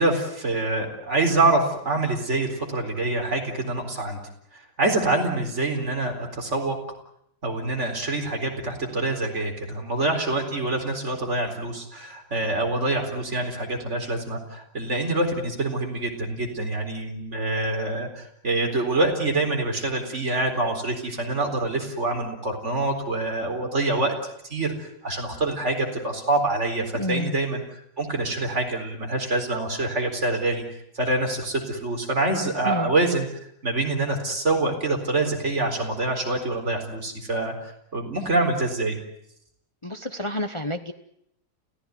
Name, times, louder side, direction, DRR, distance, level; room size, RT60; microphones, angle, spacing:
voice 1, 0.0-4.2 4.8-6.8 7.4-24.1 24.4-27.6 28.0-30.6 30.9-33.3 33.6-37.5 37.9-39.0, right 2 dB, 30° right, 3 dB, 4.5 m, -25 dB
voice 2, 26.9-27.4 32.6-32.9 39.8-40.9, left 1 dB, 40° left, 8 dB, 0.4 m, -29 dB
29.0 x 16.0 x 9.5 m, 0.75 s
omnidirectional pair, 2.3 m